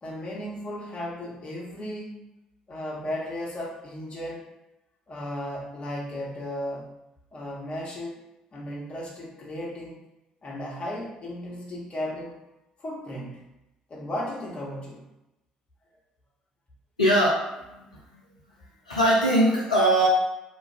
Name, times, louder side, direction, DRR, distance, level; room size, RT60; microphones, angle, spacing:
voice 1, 0.0-2.3 2.7-4.4 5.1-6.9 7.3-10.0 10.4-12.4 12.8-13.4 13.9-15.1, left 1 dB, 35° left, -4 dB, 1.0 m, -35 dB
voice 2, 17.0-17.8 18.1-18.2 18.9-20.1, right 1 dB, 85° left, -5 dB, 0.4 m, -21 dB
2.6 x 2.2 x 3.2 m, 0.94 s
figure-of-eight pair, 50°, 4 cm